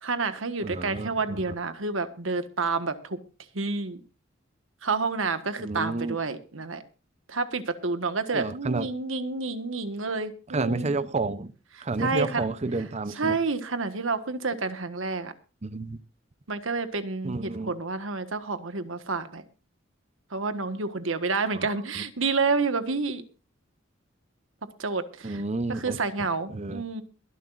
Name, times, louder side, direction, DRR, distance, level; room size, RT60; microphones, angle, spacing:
voice 1, 0.0-3.2 3.5-4.0 4.8-6.8 7.3-10.9 12.0-12.5 13.2-15.3 16.5-19.4 20.3-23.2 24.8-25.4 25.7-27.0, right 4 dB, 80° right, 1.5 m, -29 dB
voice 2, 0.6-1.4 5.6-6.2 8.3-8.9 10.5-11.5 11.8-13.4 15.6-16.0 17.2-17.7 21.5-21.7 22.0-22.1 25.2-26.8, right 3 dB, 35° right, 0.7 m, -31 dB
22.5 x 11.0 x 2.6 m
head